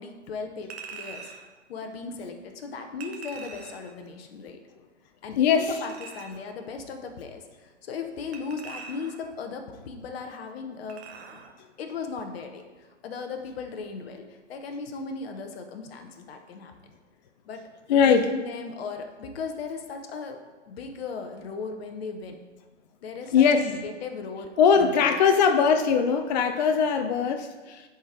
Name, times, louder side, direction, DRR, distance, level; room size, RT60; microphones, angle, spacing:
voice 1, 0.0-1.3 1.7-4.6 5.2-11.0 11.3-11.5 11.8-16.7 17.4-17.6 18.0-20.4 20.7-22.4 23.0-25.2, left 4 dB, 55° left, 5 dB, 0.9 m, -37 dB
Chink clink, 0.7-1.5 3.0-3.9 5.7-6.5 8.3-9.3 10.9-11.5 11.9-12.0, right 5 dB, 60° right, 1.1 m, -43 dB
voice 2, 5.4-5.8 17.9-18.3 23.3-23.7 24.6-27.9, left 6 dB, 35° left, 7 dB, 0.4 m, -21 dB
10.5 x 4.4 x 3.7 m, 1.3 s
hypercardioid pair, 125°, 37 cm